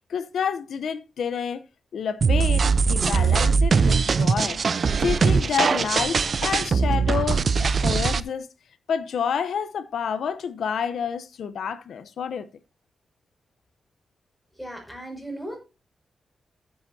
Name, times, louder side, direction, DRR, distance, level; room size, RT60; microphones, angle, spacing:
voice 1, 0.1-1.6 1.9-4.6 5.0-8.5 8.9-12.5, left 7 dB, 80° left, 0.8 m, -28 dB
sound 1, 2.2-8.2, right 5 dB, 55° right, 0.6 m, -21 dB
voice 2, 14.5-15.6, right 1 dB, ahead, 6.1 m, -36 dB
14.5 x 8.0 x 2.8 m
cardioid pair, 75°, 0 cm